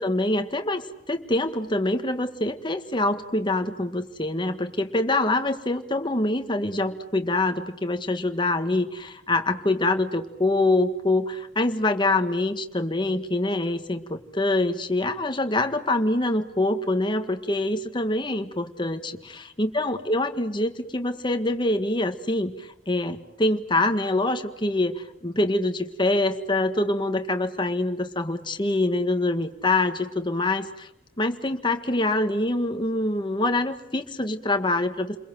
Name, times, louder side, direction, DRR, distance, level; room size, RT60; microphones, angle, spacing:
voice 1, 0.0-19.2 19.6-30.9 31.2-35.2, left 2 dB, 25° left, 6 dB, 1.7 m, -25 dB
29.5 x 22.0 x 7.8 m, 0.88 s
head